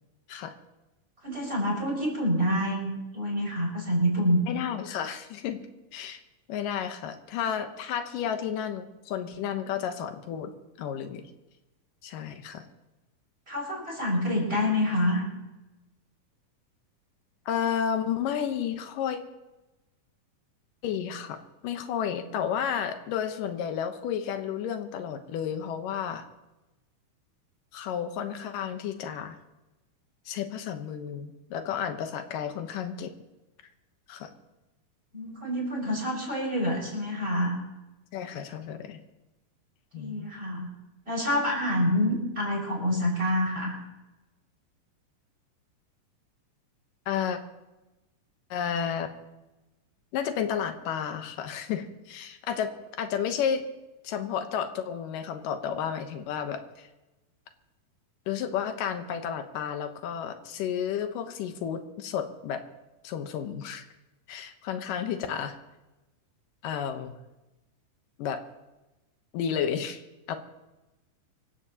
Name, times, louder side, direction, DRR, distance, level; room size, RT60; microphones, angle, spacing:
voice 1, 1.2-4.5 13.5-15.3 35.1-37.6 39.9-40.7 41.1-43.7, equal, 15° right, -2 dB, 6.0 m, -27 dB
voice 2, 4.5-5.6 5.9-6.2 6.5-10.5 10.8-11.3 12.0-12.6 17.5-19.2 20.8-21.4 21.6-26.2 27.7-29.4 30.3-33.1 34.1-34.3 38.1-39.0 39.9-40.3 47.1-47.4 48.5-49.1 50.1-52.7 53.0-53.7 54.0-56.9 58.3-62.6 63.0-63.8 64.3-65.6 66.6-67.1 68.2-68.4 69.3-70.0 70.3-70.4, left 8 dB, 85° left, 7 dB, 2.7 m, -32 dB
25.5 x 15.0 x 2.9 m, 1.1 s
omnidirectional pair, 3.7 m